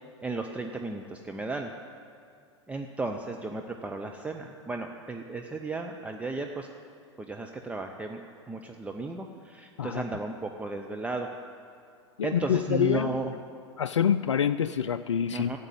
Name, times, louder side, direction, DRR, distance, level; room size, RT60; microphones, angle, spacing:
voice 1, 0.2-1.7 2.7-6.7 7.2-8.2 8.5-11.3 12.2-13.3 15.3-15.6, right 3 dB, 10° right, 3 dB, 0.7 m, -34 dB
voice 2, 12.2-13.2 13.8-15.6, left 8 dB, 80° left, 11 dB, 0.4 m, -26 dB
12.5 x 8.2 x 9.1 m, 2.3 s
figure-of-eight pair, 95°, 15 cm